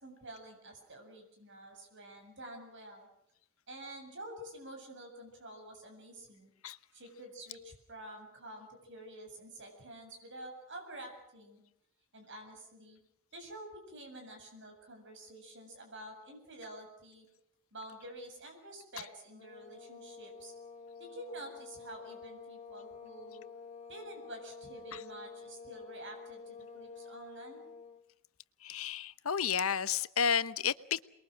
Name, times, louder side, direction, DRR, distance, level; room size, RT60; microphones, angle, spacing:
voice 1, 0.0-3.1 3.7-6.5 6.9-11.6 12.1-13.0 13.3-17.3 17.7-20.5 21.0-23.4 23.9-27.7, right 1 dB, 60° right, 3 dB, 7.5 m, -49 dB
sound 1, 19.3-28.0, left 5 dB, 30° left, 1.8 m, -50 dB
voice 2, 28.6-31.0, left 7 dB, 75° left, 14 dB, 1.0 m, -31 dB
28.5 x 22.0 x 6.3 m, 0.76 s
head